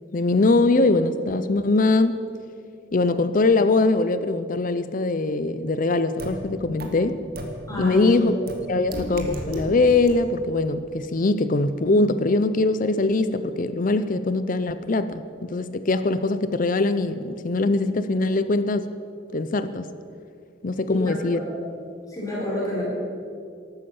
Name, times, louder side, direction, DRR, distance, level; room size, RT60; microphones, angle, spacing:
voice 1, 0.1-2.2 2.9-7.2 7.8-8.3 8.7-18.9 19.3-19.9 20.6-21.4, left 3 dB, 45° left, 12 dB, 0.5 m, -22 dB
sound 1, 6.2-6.3 6.8-6.9 7.4-7.5 8.5-8.6 8.9-9.6 10.1-10.2, right 1 dB, 50° right, 2.0 m, -32 dB
voice 2, 7.7-8.1 8.6-8.8 20.9-21.6 22.1-22.8, left 2 dB, 15° left, -5 dB, 4.2 m, -28 dB
14.0 x 12.0 x 7.0 m, 2.4 s
head